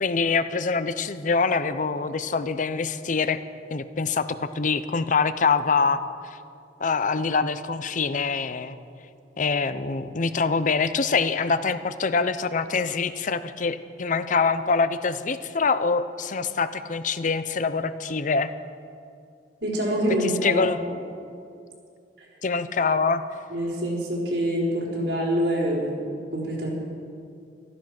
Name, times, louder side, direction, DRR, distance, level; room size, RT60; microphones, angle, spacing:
voice 1, 0.0-3.4 3.7-6.1 6.8-8.8 9.4-18.5 20.4-20.8 22.4-23.2, left 4 dB, 45° left, 12 dB, 0.6 m, -24 dB
voice 2, 19.6-20.7 22.2-22.3 23.5-26.1 26.3-26.7, equal, 75° right, -5 dB, 4.1 m, -26 dB
15.0 x 13.5 x 6.0 m, 2.5 s
head